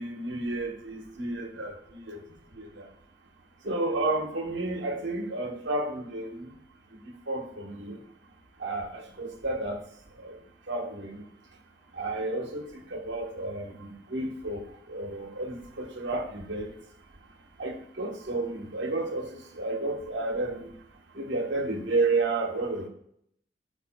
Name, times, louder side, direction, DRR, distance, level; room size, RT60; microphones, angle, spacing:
voice 1, 0.0-2.2 2.5-2.9 3.6-6.5 6.9-8.0 8.6-9.8 10.2-10.4 10.7-11.2 11.9-14.6 14.9-16.7 17.6-20.7 21.1-22.9, right 2 dB, 70° right, 3 dB, 1.2 m, -31 dB
12.5 x 4.8 x 2.2 m, 0.72 s
head